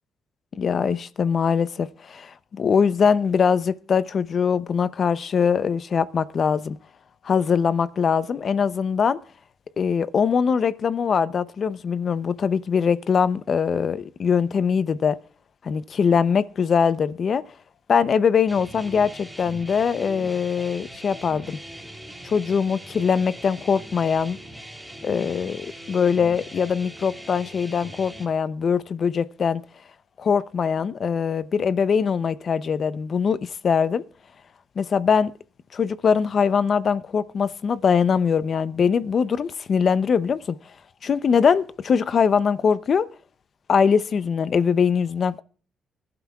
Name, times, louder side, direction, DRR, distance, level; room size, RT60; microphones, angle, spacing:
voice 1, 0.5-6.8 7.2-9.2 9.8-15.2 15.6-17.4 17.9-21.6 22.2-24.4 25.0-29.6 30.2-34.0 34.8-35.3 35.7-40.6 41.0-43.1 43.7-45.4, left 6 dB, 50° left, 0.6 m, -22 dB
sound 1, 18.5-28.3, right 1 dB, ahead, 3.2 m, -41 dB
24.5 x 11.5 x 2.4 m
cardioid pair, 90°, 0 cm